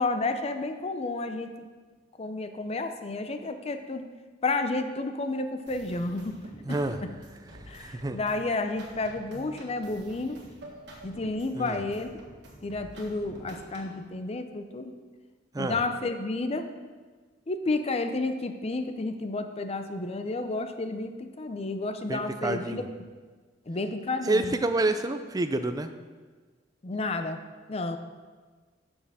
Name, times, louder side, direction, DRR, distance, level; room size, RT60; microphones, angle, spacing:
voice 1, 0.0-1.5 2.2-4.1 4.4-6.4 6.7-7.1 7.7-10.4 11.0-12.1 12.6-15.0 15.6-16.7 17.5-23.1 23.7-24.6 26.8-27.4 27.7-28.0, left 3 dB, 35° left, 8 dB, 0.5 m, -31 dB
sound 1, 5.7-14.0, right 1 dB, 65° right, 1.6 m, -48 dB
voice 2, 6.6-7.0 7.6-8.2 11.6-11.8 15.5-15.8 22.1-22.9 24.2-25.9, right 2 dB, 20° right, 9 dB, 0.4 m, -28 dB
6.7 x 5.5 x 6.2 m, 1.4 s
head